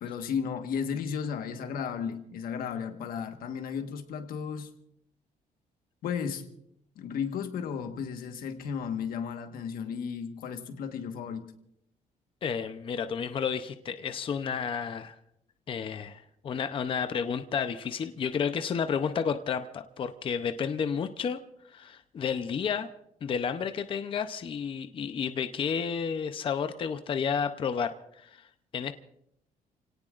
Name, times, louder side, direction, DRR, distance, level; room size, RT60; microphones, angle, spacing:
voice 1, 0.0-4.7 6.0-6.5 6.9-11.5, left 7 dB, 90° left, 6 dB, 1.4 m, -34 dB
voice 2, 12.4-15.1 15.7-21.4 21.7-22.9 23.2-28.5 28.7-28.9, left 6 dB, 35° left, 9 dB, 0.6 m, -31 dB
29.5 x 17.5 x 2.5 m, 0.76 s
cardioid pair, 170°, 15 cm